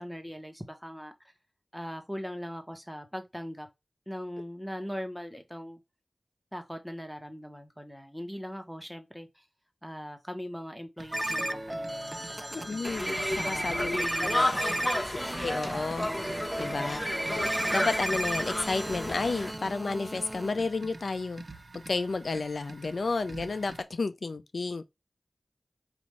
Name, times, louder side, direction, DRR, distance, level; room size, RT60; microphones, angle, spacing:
voice 1, 0.0-1.3 1.7-3.7 4.1-5.8 6.5-9.5 9.8-13.0 13.4-14.8 16.6-17.1, equal, ahead, 1.2 m, -40 dB
sound 1, 11.0-23.8, right 2 dB, 65° right, 0.6 m, -47 dB
sound 2, 11.1-20.5, right 1 dB, 20° right, 0.4 m, -34 dB
voice 2, 12.5-14.1 14.6-14.7 15.4-17.0 17.3-21.4 21.9-24.8, left 3 dB, 80° left, 0.4 m, -32 dB
Conversation, 12.8-19.5, left 1 dB, 15° left, 1.6 m, -33 dB
5.0 x 2.6 x 3.2 m
cardioid pair, 40°, 0 cm